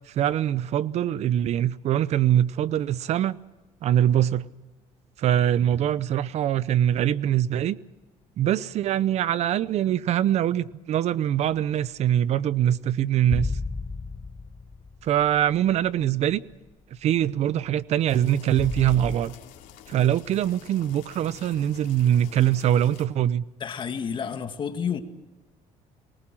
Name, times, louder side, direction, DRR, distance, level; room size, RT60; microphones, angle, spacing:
voice 1, 0.1-3.4 3.8-4.5 5.2-7.8 8.4-13.5 15.0-16.4 17.0-19.3 19.9-23.4, right 11 dB, 55° right, 0.7 m, -23 dB
sound 1, 13.3-16.1 16.5-16.6 18.6-19.2, left 3 dB, 10° left, 0.7 m, -32 dB
sound 2, 18.1-23.1, left 11 dB, 85° left, 3.0 m, -48 dB
voice 2, 23.6-25.0, left 7 dB, 40° left, 1.9 m, -30 dB
23.0 x 20.0 x 7.5 m
cardioid pair, 135°, 13 cm